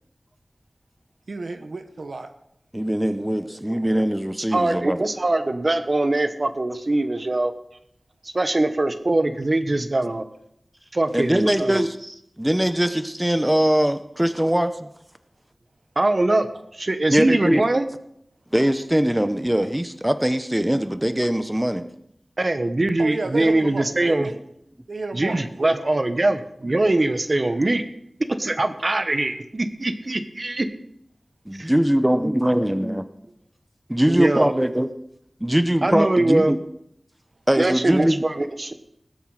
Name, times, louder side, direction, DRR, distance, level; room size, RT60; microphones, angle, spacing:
voice 1, 1.3-2.3 23.0-24.4 24.9-25.8, right 3 dB, 85° right, 8 dB, 1.0 m, -31 dB
voice 2, 2.7-5.0 11.1-14.9 17.1-17.6 18.5-21.8 24.2-24.3 31.5-33.0 33.9-34.9 35.4-36.6 37.5-38.2, equal, 10° right, 10 dB, 0.8 m, -21 dB
voice 3, 4.5-7.5 8.2-10.2 10.9-11.8 16.0-17.9 22.4-24.3 25.1-27.8 28.4-30.7 31.6-31.7 34.1-34.5 35.8-36.5 37.6-38.7, right 2 dB, 50° right, 10 dB, 1.2 m, -22 dB
19.5 x 7.9 x 4.9 m, 0.77 s
wide cardioid pair, 50°, 0 cm